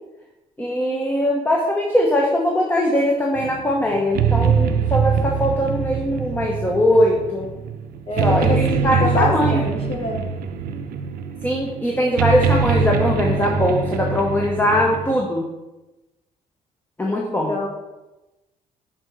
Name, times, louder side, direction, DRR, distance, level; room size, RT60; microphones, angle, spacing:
voice 1, 0.6-7.5 8.2-9.6 11.4-15.5 17.0-17.5, left 1 dB, 15° left, -1 dB, 1.0 m, -21 dB
sound 1, 3.4-15.2, right 6 dB, 85° right, 0.6 m, -23 dB
voice 2, 8.1-10.2 17.0-17.7, left 3 dB, 40° left, 1 dB, 1.6 m, -26 dB
6.3 x 4.0 x 6.1 m, 1.0 s
cardioid pair, 105°, 15 cm